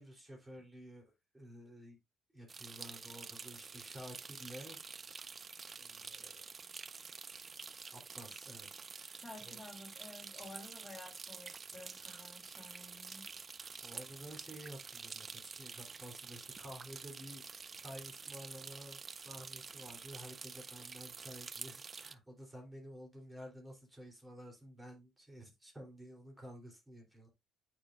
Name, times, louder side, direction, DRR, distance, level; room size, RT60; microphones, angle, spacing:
voice 1, 0.0-2.0 2.3-5.5 5.8-6.5 7.9-9.6 10.5-10.7 12.0-12.2 13.6-17.4 17.7-27.3, equal, 15° right, 3.2 m, -52 dB
sound 1, 2.5-22.1, right 5 dB, 40° right, 0.4 m, -48 dB
voice 2, 9.2-13.3, left 2 dB, 15° left, 2.9 m, -52 dB
8.6 x 4.9 x 2.4 m
hypercardioid pair, 55°, 0 cm